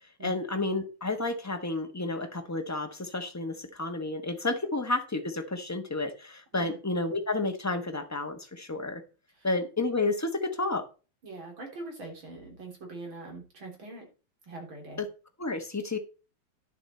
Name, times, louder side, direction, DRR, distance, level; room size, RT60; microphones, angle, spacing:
voice 1, 0.2-9.0 9.4-10.8 15.0-15.1 15.4-16.0, left 2 dB, 15° left, 6 dB, 0.7 m, -31 dB
voice 2, 11.2-14.1 14.4-15.0, right 2 dB, 70° right, 1 dB, 4.2 m, -43 dB
11.0 x 7.2 x 4.3 m, 0.33 s
omnidirectional pair, 2.3 m